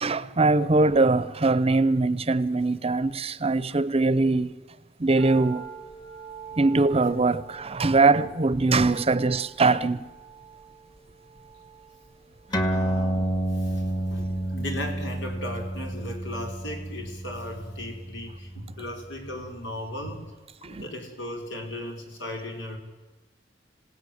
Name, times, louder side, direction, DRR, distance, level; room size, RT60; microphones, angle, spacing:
voice 1, 0.0-4.5 5.0-5.7 6.6-10.1 20.6-20.8, right 3 dB, 35° right, 0.8 m, -22 dB
sound 1, 5.2-17.5 17.7-17.8, right 7 dB, 55° left, 7.9 m, -46 dB
sound 2, 12.5-19.5, right 1 dB, 25° left, 1.8 m, -30 dB
voice 2, 12.7-13.8 14.1-20.3 20.6-22.8, left 1 dB, 80° left, 5.4 m, -37 dB
28.0 x 17.5 x 7.9 m
head